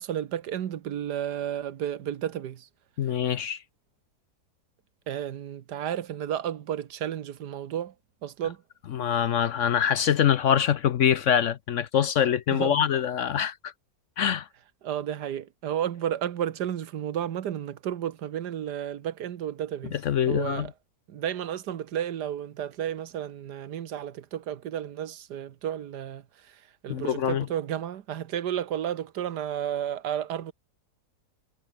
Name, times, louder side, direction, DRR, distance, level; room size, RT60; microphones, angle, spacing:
voice 1, 0.0-2.7 5.1-7.9 8.2-8.6 12.5-12.8 14.8-20.0 20.3-20.7 21.1-30.5, right 10 dB, 85° right, 1.6 m, -32 dB
voice 2, 3.0-3.6 8.9-13.7 14.2-14.5 19.9-20.7 26.9-27.5, left 9 dB, 60° left, 0.9 m, -24 dB
omnidirectional pair, 1.7 m